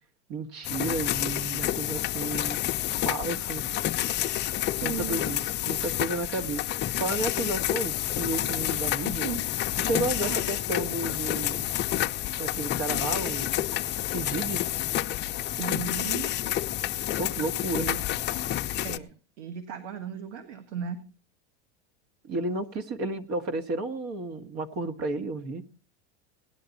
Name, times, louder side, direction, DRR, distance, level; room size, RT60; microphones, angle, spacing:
voice 1, 0.3-2.6 3.0-3.7 4.8-6.6 7.0-9.3 9.8-11.6 12.4-13.6 14.1-14.6 17.2-17.9 22.2-25.6, right 2 dB, 50° right, 8 dB, 1.8 m, -32 dB
sound 1, 0.6-19.0, left 13 dB, 30° left, 0.6 m, -29 dB
voice 2, 4.8-5.2 9.2-9.4 10.2-10.4 15.6-16.3 17.8-18.0 18.8-19.1 19.4-21.0, right 7 dB, 80° right, 8 dB, 1.8 m, -35 dB
18.0 x 10.5 x 4.1 m, 0.36 s
supercardioid pair, 120°, 35 cm